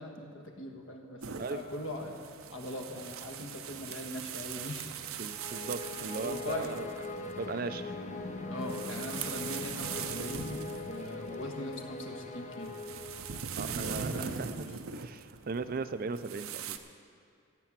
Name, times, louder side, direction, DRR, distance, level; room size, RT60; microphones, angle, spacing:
voice 1, 0.0-2.2 2.5-4.9 6.2-6.8 8.5-10.6 10.9-12.8 13.5-14.7, left 1 dB, 70° left, 3 dB, 1.5 m, -41 dB
sound 1, 1.2-16.8, right 7 dB, 80° right, 0.7 m, -42 dB
voice 2, 5.2-6.9 7.2-8.1 13.6-16.8, right 4 dB, 45° right, 12 dB, 0.4 m, -38 dB
sound 2, 5.3-13.7, left 3 dB, 35° left, 0.7 m, -41 dB
16.0 x 7.0 x 7.3 m, 2.4 s
head